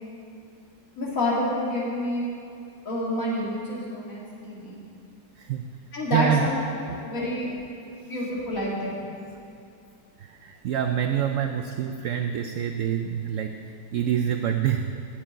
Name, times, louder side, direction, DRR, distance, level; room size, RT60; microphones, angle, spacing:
voice 1, 1.0-2.2 2.8-4.8 5.9-7.5 8.0-9.0, left 1 dB, 50° left, -5 dB, 2.8 m, -28 dB
voice 2, 5.4-5.7 6.1-6.4 6.8-7.1 10.2-13.6 13.9-15.0, right 9 dB, 85° right, 6 dB, 0.6 m, -26 dB
8.4 x 7.8 x 8.9 m, 2.5 s
omnidirectional pair, 1.9 m